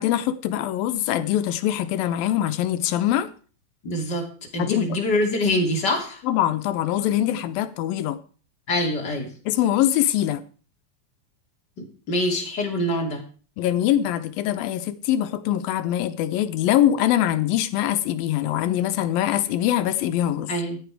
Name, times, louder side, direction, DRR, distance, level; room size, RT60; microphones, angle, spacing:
voice 1, 0.0-3.3 4.6-5.0 6.2-8.2 9.5-10.4 13.6-20.5, left 12 dB, 90° left, 2.7 m, -23 dB
voice 2, 3.8-4.2 4.5-6.2 8.7-9.3 11.8-13.2 20.5-20.8, left 1 dB, 30° left, 3.1 m, -25 dB
14.0 x 10.5 x 4.8 m
omnidirectional pair, 4.1 m